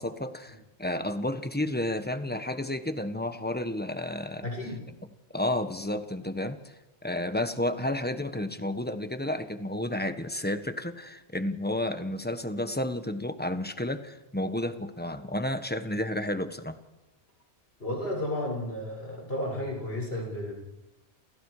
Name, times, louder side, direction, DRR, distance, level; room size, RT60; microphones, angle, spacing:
voice 1, 0.0-4.5 5.3-6.7 7.0-16.8, left 1 dB, 10° left, 9 dB, 1.3 m, -31 dB
voice 2, 4.4-4.8 17.8-20.5, left 1 dB, 60° left, -1 dB, 7.1 m, -32 dB
29.5 x 28.0 x 5.0 m, 1.0 s
omnidirectional pair, 1.2 m